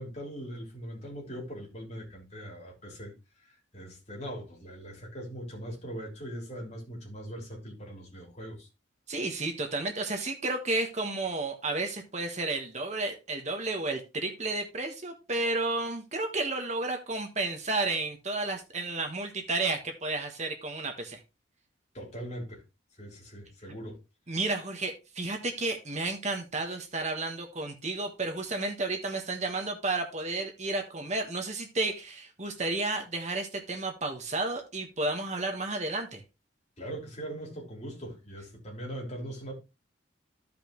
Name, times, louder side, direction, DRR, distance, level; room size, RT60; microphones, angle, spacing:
voice 1, 0.0-3.1 3.7-8.7 21.9-22.6 23.0-24.0 36.8-39.5, right 1 dB, 35° left, 3.4 m, -40 dB
voice 2, 9.1-21.2 24.3-36.2, right 2 dB, 35° right, 1.3 m, -32 dB
14.5 x 5.3 x 3.0 m
head